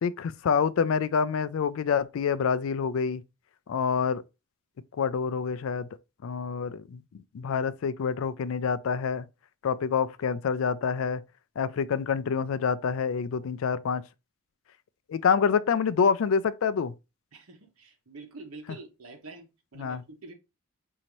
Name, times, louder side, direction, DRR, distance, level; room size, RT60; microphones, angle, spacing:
voice 1, 0.0-3.2 3.7-4.2 4.9-5.9 6.2-7.0 7.3-9.3 9.6-11.2 11.6-14.0 15.1-16.9 19.8-20.0, left 6 dB, 65° left, 0.3 m, -27 dB
voice 2, 17.3-20.3, right 3 dB, 85° right, 1.1 m, -46 dB
5.1 x 2.8 x 3.0 m
head